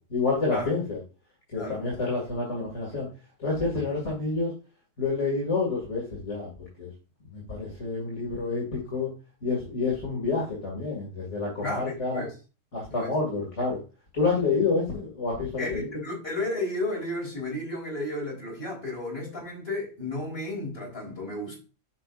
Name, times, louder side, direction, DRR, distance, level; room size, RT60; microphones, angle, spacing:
voice 1, 0.1-1.0 1.5-3.1 3.4-4.5 5.0-6.5 6.8-6.9 7.3-9.1 9.4-12.2 12.7-13.8 14.1-15.9, left 3 dB, 65° left, 2.8 m, -28 dB
voice 2, 11.6-12.3 12.9-13.1 15.6-21.6, left 2 dB, 50° left, 4.3 m, -33 dB
10.0 x 5.7 x 2.5 m
omnidirectional pair, 1.3 m